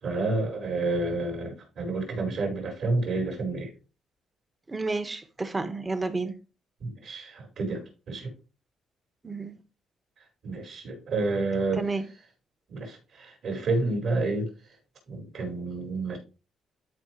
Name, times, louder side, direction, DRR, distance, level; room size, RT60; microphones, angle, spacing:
voice 1, 0.0-3.7 6.8-8.3 10.4-11.9 12.7-14.5 15.1-16.2, right 3 dB, 65° right, 4.7 m, -29 dB
voice 2, 4.7-6.4 9.2-9.6 11.8-12.0, right 3 dB, 25° right, 1.2 m, -31 dB
12.5 x 4.8 x 3.0 m
cardioid pair, 90°, 0 cm